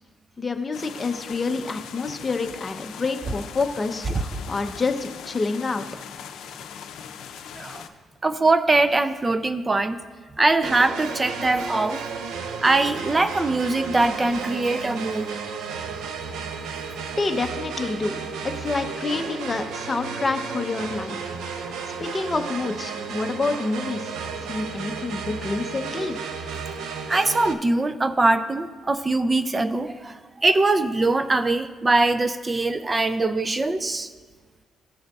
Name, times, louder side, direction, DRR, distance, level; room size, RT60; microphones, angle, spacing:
voice 1, 0.4-5.8 17.2-18.2 18.4-24.2 24.5-26.2, left 3 dB, 30° left, 6 dB, 0.7 m, -28 dB
sound 1, 0.7-7.9, left 8 dB, 80° left, 0.5 m, -40 dB
voice 2, 8.2-10.0 10.4-12.0 12.6-15.3 27.1-34.1, right 2 dB, 25° right, 11 dB, 0.4 m, -22 dB
sound 2, 10.6-27.5, right 5 dB, 85° right, 0.6 m, -33 dB
15.0 x 6.3 x 2.4 m, 1.5 s
cardioid pair, 90°, 0 cm